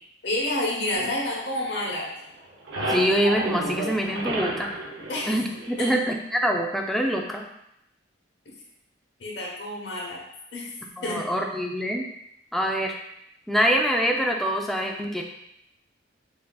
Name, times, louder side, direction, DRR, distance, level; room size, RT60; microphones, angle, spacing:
voice 1, 0.2-2.1 5.1-5.3 5.8-5.9 9.2-10.2 10.5-10.7 11.0-11.2, left 1 dB, 65° left, -3 dB, 1.0 m, -29 dB
sound 1, 0.9-2.1 2.4-6.1, right 1 dB, 75° right, 0.7 m, -32 dB
voice 2, 2.9-4.7 5.3-7.4 11.0-12.1 12.5-12.9 13.5-15.2, equal, ahead, 1 dB, 0.3 m, -25 dB
5.5 x 2.7 x 2.3 m, 0.78 s
head